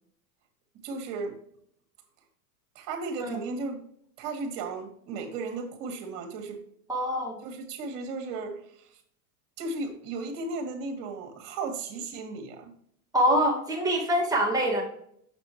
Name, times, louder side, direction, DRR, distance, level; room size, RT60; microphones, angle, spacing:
voice 1, 0.8-1.4 2.8-3.8 4.2-6.6 7.4-9.0 9.6-12.7, right 3 dB, 50° right, 4 dB, 1.7 m, -35 dB
voice 2, 6.9-7.4 13.1-14.8, equal, 10° right, -3 dB, 1.7 m, -25 dB
6.4 x 6.0 x 3.0 m, 0.70 s
hypercardioid pair, 110°, 46 cm